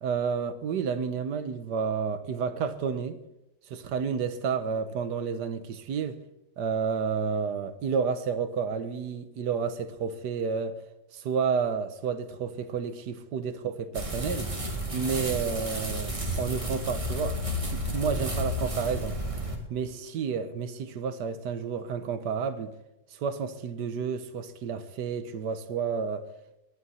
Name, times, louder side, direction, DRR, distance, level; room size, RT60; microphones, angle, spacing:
voice 1, 0.0-3.2 3.7-6.2 6.6-10.7 11.1-14.5 14.9-17.4 17.7-19.2 19.7-22.7 23.1-26.3, right 6 dB, 65° right, 1.3 m, -30 dB
sound 1, 13.9-19.6, equal, 15° right, 1.9 m, -32 dB
18.5 x 11.5 x 4.2 m
omnidirectional pair, 2.2 m